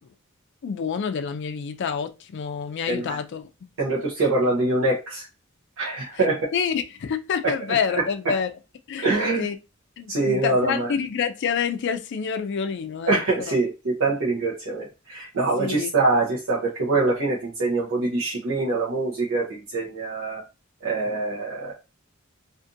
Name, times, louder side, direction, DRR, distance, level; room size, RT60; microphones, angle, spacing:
voice 1, 0.6-3.5 6.5-8.5 8.9-9.1 9.4-9.6 10.0-13.2 13.5-13.6 15.6-15.9, left 6 dB, 60° left, 0.4 m, -27 dB
voice 2, 2.9-3.2 3.8-5.3 5.8-6.4 7.4-7.5 7.9-8.1 9.0-9.4 10.1-10.9 13.1-20.4 20.8-21.7, right 3 dB, 70° right, 0.7 m, -24 dB
2.5 x 2.5 x 2.5 m
head